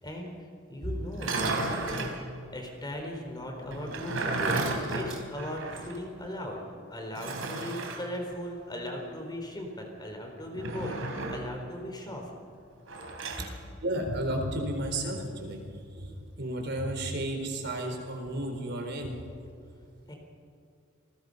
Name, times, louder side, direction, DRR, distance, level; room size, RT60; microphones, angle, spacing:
voice 1, 0.0-12.3 13.4-13.5 20.1-20.2, left 1 dB, 20° left, 2 dB, 4.1 m, -38 dB
sound 1, 1.1-2.2 3.7-6.0 6.3-6.4 7.1-8.0 10.5-11.5 12.9-13.5, right 2 dB, 85° right, 3.7 m, -33 dB
voice 2, 13.8-15.6 16.0-19.1, right 1 dB, 60° right, 3 dB, 4.3 m, -32 dB
28.0 x 20.0 x 5.5 m, 2.4 s
head